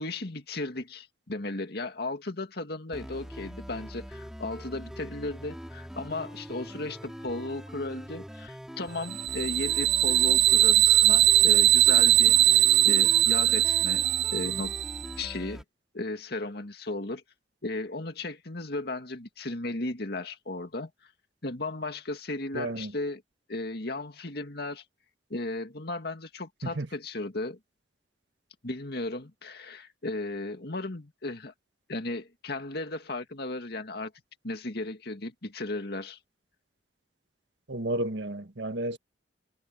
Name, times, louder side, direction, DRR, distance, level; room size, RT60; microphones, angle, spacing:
voice 1, 0.0-14.0 14.3-14.7 15.2-15.6 15.9-17.2 17.6-20.9 21.4-23.2 23.5-24.8 25.3-27.6 28.6-31.5 31.9-34.1 34.4-36.2, left 2 dB, 65° left, 2.2 m, -35 dB
sound 1, 2.9-15.6, equal, 5° right, 3.6 m, -43 dB
sound 2, 9.1-15.1, right 12 dB, 65° right, 1.3 m, -21 dB
voice 2, 22.5-22.9 26.7-26.9 37.7-39.0, right 1 dB, 80° right, 1.6 m, -32 dB
head